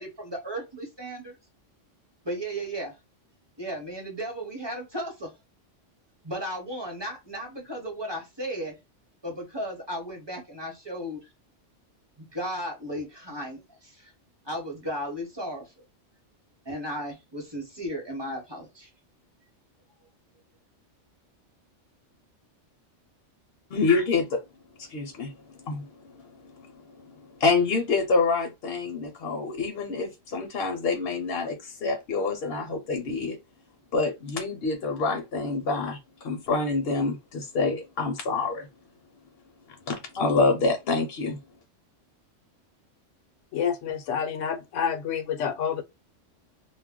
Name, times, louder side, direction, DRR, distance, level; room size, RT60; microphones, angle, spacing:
voice 1, 0.0-1.4 2.2-2.9 3.6-5.3 6.2-8.8 9.2-11.3 12.2-14.1 14.4-15.7 16.6-18.9, equal, 25° right, 0.9 m, -35 dB
voice 2, 23.7-24.4 24.9-25.3 25.7-25.9 27.4-33.4 33.9-38.7 39.9-41.4, left 3 dB, 60° left, 0.8 m, -26 dB
voice 3, 43.5-45.8, left 7 dB, 85° left, 0.9 m, -28 dB
2.3 x 2.1 x 3.5 m
omnidirectional pair, 1.2 m